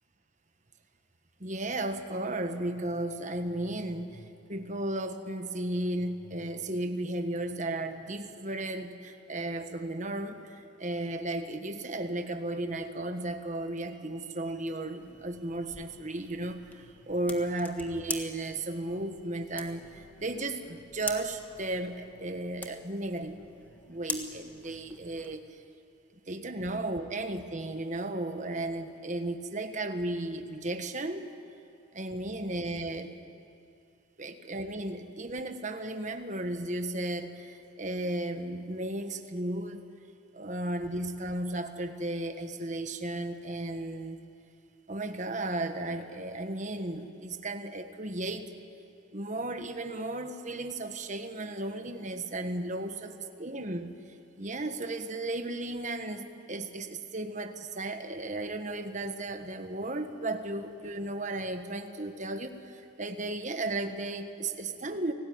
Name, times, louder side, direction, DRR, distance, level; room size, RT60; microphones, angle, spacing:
voice 1, 1.4-23.3 23.8-25.4 26.3-31.3 31.9-33.1 34.2-39.8 40.3-44.2 44.9-48.5 49.1-53.1 53.4-53.9 54.4-65.1, right 2 dB, 35° right, 7 dB, 1.5 m, -34 dB
sound 1, 15.0-25.4, left 2 dB, 10° left, 1.6 m, -44 dB
29.5 x 18.5 x 9.5 m, 2.6 s
head